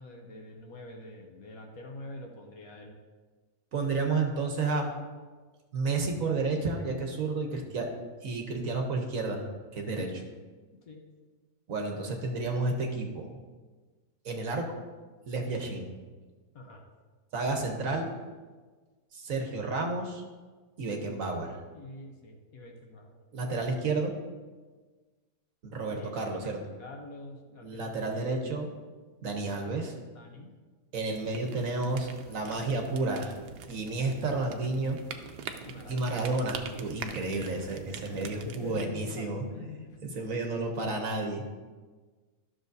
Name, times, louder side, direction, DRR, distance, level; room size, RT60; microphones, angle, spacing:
voice 1, 0.0-3.0 9.9-10.1 10.8-11.0 12.2-12.4 16.5-16.8 21.7-23.2 25.9-28.2 30.1-30.5 35.6-36.4 36.7-36.9 38.0-40.2, left 2 dB, 65° left, 1 dB, 1.4 m, -45 dB
voice 2, 3.7-4.9 5.7-7.9 8.2-10.1 11.7-13.4 14.2-14.7 15.3-15.9 17.3-18.1 19.1-20.2 20.8-21.6 23.3-24.1 25.6-26.6 27.6-28.7 29.2-29.9 30.9-33.3 33.7-35.0 35.9-39.4 40.1-41.5, right 3 dB, 60° right, 3 dB, 1.2 m, -31 dB
sound 1, 31.1-38.9, right 6 dB, 85° right, 1.2 m, -44 dB
12.5 x 6.4 x 2.7 m, 1.4 s
omnidirectional pair, 1.7 m